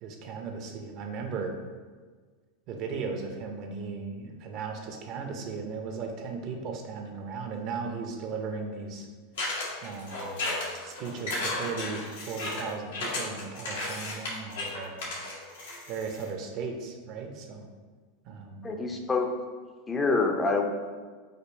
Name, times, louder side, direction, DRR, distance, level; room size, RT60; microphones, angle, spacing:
voice 1, 0.0-1.6 2.7-9.1 9.8-10.6 10.8-15.1 15.9-17.7 18.2-18.8, right 5 dB, 50° right, 4 dB, 0.6 m, -36 dB
sound 1, 9.4-16.3, left 2 dB, 90° left, 1.4 m, -34 dB
voice 2, 18.6-19.3 19.9-20.6, left 3 dB, 20° left, 2 dB, 0.5 m, -26 dB
5.1 x 2.3 x 4.4 m, 1.5 s
hypercardioid pair, 115°, 0 cm